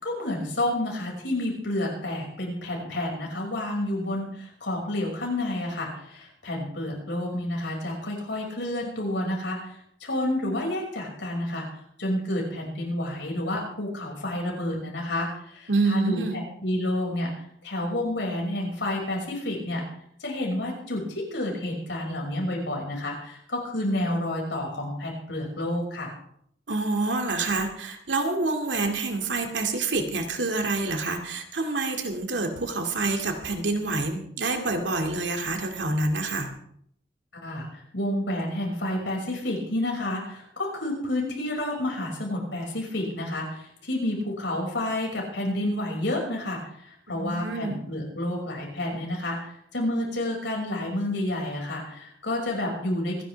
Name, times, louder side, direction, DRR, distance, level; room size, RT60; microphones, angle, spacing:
voice 1, 0.0-11.7 12.0-17.3 17.6-19.8 20.2-26.1 37.4-53.2, left 1 dB, 80° left, 0 dB, 5.8 m, -30 dB
voice 2, 15.7-16.4 26.7-36.5 47.1-47.8, right 3 dB, 80° right, 3 dB, 2.3 m, -27 dB
26.0 x 11.0 x 3.4 m, 0.68 s
head